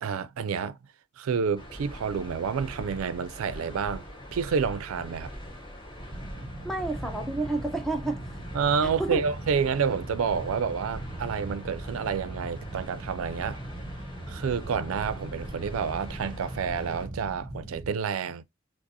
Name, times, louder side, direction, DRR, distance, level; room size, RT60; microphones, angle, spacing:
voice 1, 0.0-0.8 1.2-4.1 4.3-5.3 8.5-13.6 14.3-18.4, right 6 dB, 85° right, 0.4 m, -29 dB
sound 1, 1.6-17.1, equal, 25° left, 0.9 m, -43 dB
sound 2, 6.1-17.9, right 1 dB, 20° right, 0.9 m, -40 dB
voice 2, 6.6-8.4 8.8-9.2, right 2 dB, ahead, 0.4 m, -30 dB
4.7 x 2.0 x 2.6 m
head